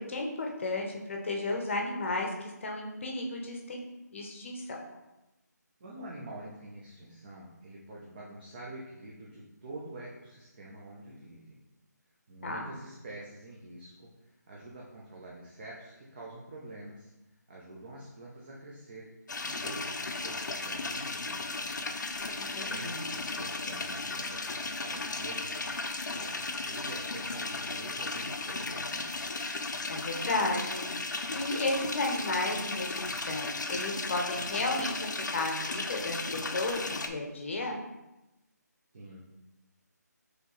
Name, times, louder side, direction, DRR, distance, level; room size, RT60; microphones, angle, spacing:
voice 1, 0.1-3.8 4.1-4.6 12.4-12.7 22.4-23.1 29.9-30.8 31.3-37.8, left 2 dB, 40° left, 1 dB, 0.7 m, -33 dB
voice 2, 5.8-11.6 12.3-17.1 17.5-21.8 22.6-29.2 38.9-39.2, right 1 dB, 30° right, -4 dB, 0.6 m, -46 dB
sound 1, 19.3-37.1, left 3 dB, 80° left, 0.5 m, -35 dB
4.3 x 3.2 x 3.0 m, 0.98 s
figure-of-eight pair, 165°, 10 cm